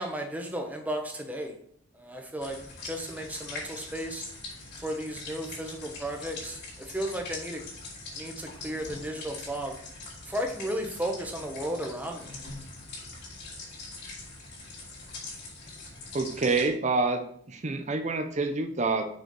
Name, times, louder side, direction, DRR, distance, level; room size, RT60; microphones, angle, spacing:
voice 1, 0.0-1.5 1.9-4.2 4.8-7.6 8.2-9.8 10.3-12.4, right 1 dB, 5° right, 2 dB, 1.0 m, -34 dB
sound 1, 2.4-16.7, left 3 dB, 50° left, 3.3 m, -42 dB
voice 2, 16.1-19.0, right 3 dB, 35° right, 7 dB, 0.7 m, -27 dB
6.5 x 4.9 x 5.3 m, 0.65 s
head